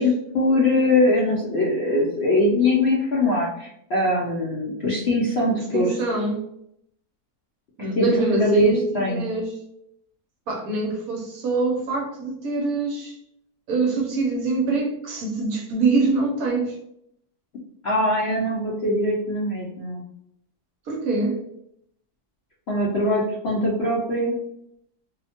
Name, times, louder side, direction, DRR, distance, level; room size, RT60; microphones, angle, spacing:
voice 1, 0.0-6.0 8.0-9.2 17.8-20.0 22.7-24.4, left 1 dB, 60° left, -5 dB, 0.6 m, -22 dB
voice 2, 5.6-6.4 7.8-9.5 10.5-13.2 13.7-16.8 20.9-21.4, right 3 dB, 70° right, 0 dB, 1.0 m, -24 dB
2.7 x 2.1 x 2.8 m, 0.75 s
omnidirectional pair, 1.7 m